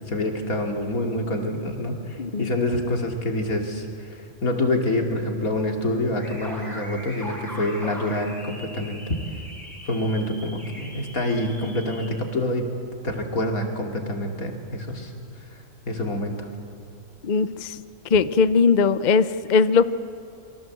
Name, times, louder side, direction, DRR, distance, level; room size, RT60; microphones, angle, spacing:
voice 1, 0.1-9.0 9.9-12.7 13.0-15.1 15.4-16.5, left 1 dB, 85° left, 3 dB, 3.0 m, -27 dB
voice 2, 2.2-2.5 17.2-17.7 18.1-19.9, left 5 dB, 45° left, 14 dB, 0.6 m, -19 dB
sound 1, 6.1-12.1, equal, ahead, 7.5 m, -40 dB
27.5 x 24.0 x 7.7 m, 2.4 s
omnidirectional pair, 1.4 m